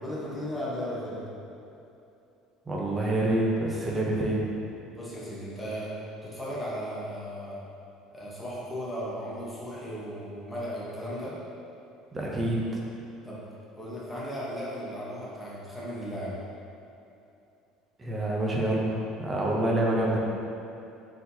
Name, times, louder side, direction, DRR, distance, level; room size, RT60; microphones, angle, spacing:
voice 1, 0.0-1.2 4.9-5.9 6.2-7.6 8.1-11.3 13.2-13.4 13.8-16.3, equal, 5° left, -8 dB, 0.8 m, -36 dB
voice 2, 2.7-4.4 12.1-12.6 18.0-20.2, right 1 dB, 15° right, -3 dB, 0.5 m, -27 dB
4.3 x 3.9 x 2.7 m, 2.7 s
cardioid pair, 165°, 0 cm